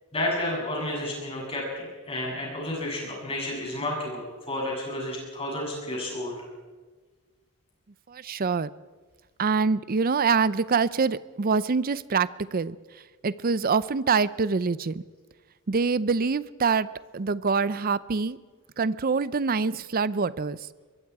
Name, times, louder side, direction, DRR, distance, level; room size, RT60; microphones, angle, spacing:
voice 1, 0.1-6.3, left 1 dB, 25° left, -2 dB, 7.9 m, -31 dB
voice 2, 8.1-8.7 9.4-12.8 13.2-15.0 15.7-16.9 17.1-18.4 18.8-20.7, right 5 dB, 40° right, 17 dB, 0.5 m, -25 dB
24.5 x 22.5 x 4.8 m, 1.4 s
head